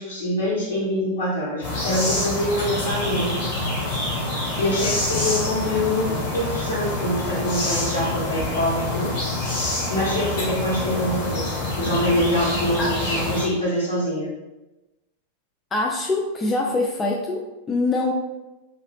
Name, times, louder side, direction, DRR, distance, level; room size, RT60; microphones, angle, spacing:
voice 1, 0.0-3.3 4.6-9.1 9.9-14.3, left 1 dB, 70° left, -7 dB, 1.4 m, -25 dB
sound 1, 1.6-13.4, left 2 dB, 45° left, 1.3 m, -26 dB
voice 2, 15.7-18.1, left 2 dB, 20° left, 0 dB, 0.3 m, -24 dB
2.8 x 2.7 x 3.1 m, 1.0 s
figure-of-eight pair, 90°, 0 cm